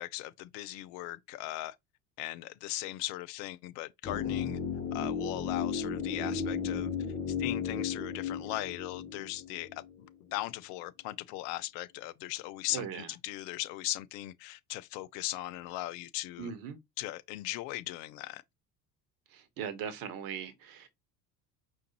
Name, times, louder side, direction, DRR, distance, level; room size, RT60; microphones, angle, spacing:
voice 1, 0.0-1.8 2.2-4.6 4.9-6.9 7.4-16.5 17.0-18.4, left 16 dB, 40° left, 0.4 m, -38 dB
sound 1, 4.0-10.1 10.3-10.4, left 6 dB, 15° left, 0.9 m, -34 dB
voice 2, 12.7-13.1 16.4-16.8 19.3-20.9, right 8 dB, 45° right, 1.2 m, -39 dB
4.9 x 3.0 x 2.8 m
figure-of-eight pair, 65°, 48 cm